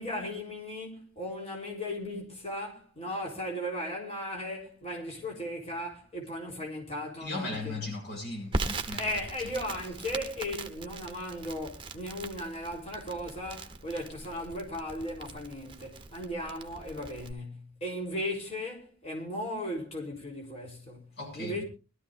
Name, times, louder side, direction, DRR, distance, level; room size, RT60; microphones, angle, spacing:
voice 1, 0.0-7.8 9.0-21.6, left 1 dB, 30° left, 3.8 m, -37 dB
voice 2, 7.2-9.0 21.2-21.6, left 2 dB, 55° left, 6.9 m, -37 dB
Crackle, 8.5-17.3, right 3 dB, 25° right, 1.1 m, -40 dB
22.5 x 13.0 x 2.5 m
head